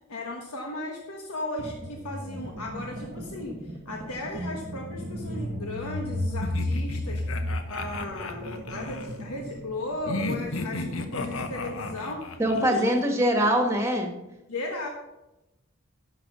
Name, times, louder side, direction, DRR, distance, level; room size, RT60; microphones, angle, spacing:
voice 1, 0.1-3.6 3.8-7.2 7.7-12.9 13.3-13.4 14.5-14.9, left 2 dB, 90° left, 1 dB, 1.3 m, -36 dB
sound 1, 1.6-12.1, left 1 dB, 45° right, 1.1 m, -35 dB
sound 2, 6.4-9.1 10.1-12.7, left 3 dB, 65° left, 0.9 m, -34 dB
voice 2, 12.4-14.1, equal, 10° right, 3 dB, 1.5 m, -23 dB
11.0 x 6.0 x 6.1 m, 0.96 s
head